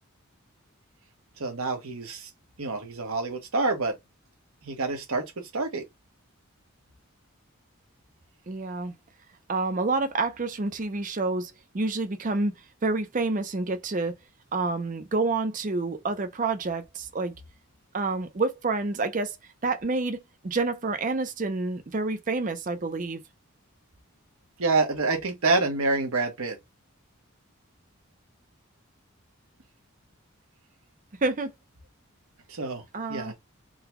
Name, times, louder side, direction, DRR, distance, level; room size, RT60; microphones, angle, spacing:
voice 1, 1.4-2.3 2.6-4.0 4.6-5.8 24.6-26.6 32.5-32.8 33.1-33.3, right 3 dB, 75° right, 1.1 m, -27 dB
voice 2, 8.5-8.9 9.5-12.5 12.8-14.2 14.5-17.3 17.9-19.4 19.6-23.2 31.2-31.5 32.9-33.3, right 3 dB, 35° right, 0.5 m, -28 dB
3.8 x 2.3 x 2.9 m
head